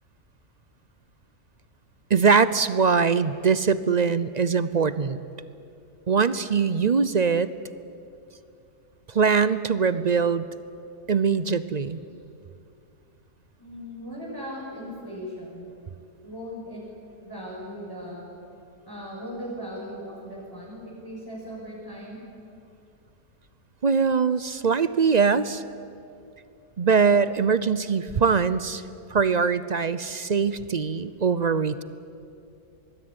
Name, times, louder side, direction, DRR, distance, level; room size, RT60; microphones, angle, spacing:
voice 1, 2.1-5.2 6.1-7.5 9.1-10.5 11.1-12.0 23.8-25.6 26.8-28.8 29.1-31.8, right 5 dB, 45° right, 15 dB, 0.5 m, -22 dB
voice 2, 13.6-15.7 16.2-16.8 17.2-18.3 18.9-22.2 24.6-24.7, equal, 15° left, -6 dB, 6.3 m, -38 dB
24.5 x 21.0 x 9.8 m, 2.6 s
omnidirectional pair, 1.6 m